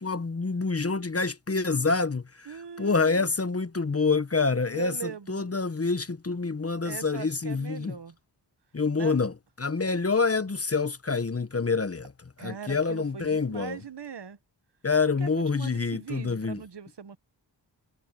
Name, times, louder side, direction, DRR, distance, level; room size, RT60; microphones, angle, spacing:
voice 1, 0.0-7.9 8.7-12.1 12.4-13.8 14.8-16.6, left 4 dB, 30° left, 1.1 m, -27 dB
voice 2, 2.4-3.3 4.7-5.5 6.8-8.1 8.9-9.2 9.8-9.9 12.4-14.4 15.2-17.2, right 7 dB, 60° right, 1.4 m, -40 dB
wide cardioid pair, 65°, 45 cm